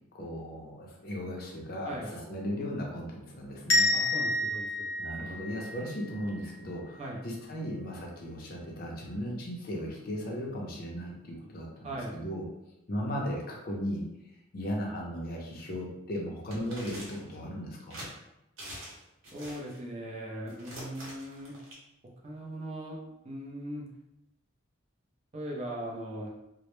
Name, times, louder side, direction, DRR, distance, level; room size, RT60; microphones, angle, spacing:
voice 1, 0.1-3.9 5.0-12.4 12.9-14.0 14.5-18.0, equal, 45° left, -1 dB, 0.5 m, -36 dB
sound 1, 3.7-6.5, left 1 dB, 85° left, 0.6 m, -29 dB
voice 2, 3.9-4.9 7.0-7.2 11.8-12.1 19.3-21.6 22.2-23.0 23.2-23.9 25.3-26.3, right 1 dB, 30° right, -2 dB, 0.4 m, -39 dB
sound 2, 16.5-17.4 17.9-18.1 18.6-19.0 19.2-19.8 20.5-21.7, equal, 75° right, 0.8 m, -44 dB
2.0 x 2.0 x 2.9 m, 0.89 s
head